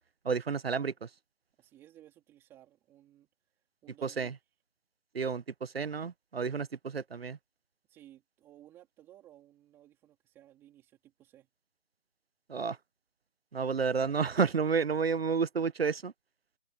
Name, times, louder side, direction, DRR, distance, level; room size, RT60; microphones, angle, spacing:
voice 1, 0.2-1.1 4.0-4.3 5.1-7.4 12.5-12.8 13.5-16.1, right 5 dB, 60° right, 0.9 m, -31 dB
voice 2, 1.6-3.3 3.8-4.4 7.9-11.5, right 12 dB, 5° right, 3.4 m, -58 dB
figure-of-eight pair, 170°, 35 cm